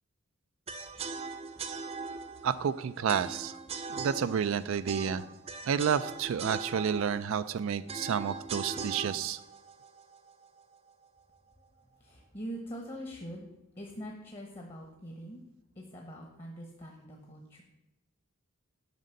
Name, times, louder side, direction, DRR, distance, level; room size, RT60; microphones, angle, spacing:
sound 1, 0.7-10.7, right 4 dB, 30° right, 0.6 m, -41 dB
voice 1, 2.4-3.6 3.9-5.2 5.7-9.4, right 7 dB, 65° right, 12 dB, 0.4 m, -30 dB
voice 2, 12.0-13.5 13.8-15.4 15.8-17.6, equal, 30° left, 1 dB, 1.1 m, -43 dB
9.4 x 5.2 x 6.4 m, 0.93 s
head